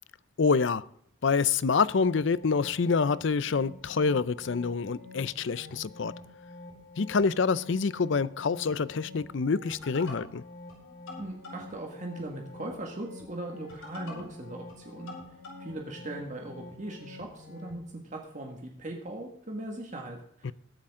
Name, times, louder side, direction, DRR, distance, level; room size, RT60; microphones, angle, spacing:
voice 1, 0.4-0.8 1.2-6.1 7.0-10.4 20.4-20.5, left 5 dB, 60° left, 18 dB, 0.5 m, -26 dB
sound 1, 1.7-17.8, left 2 dB, 80° left, 5.1 m, -47 dB
voice 2, 11.2-15.1 15.6-20.5, right 1 dB, 35° right, 1 dB, 1.8 m, -39 dB
21.0 x 8.7 x 3.7 m, 0.67 s
head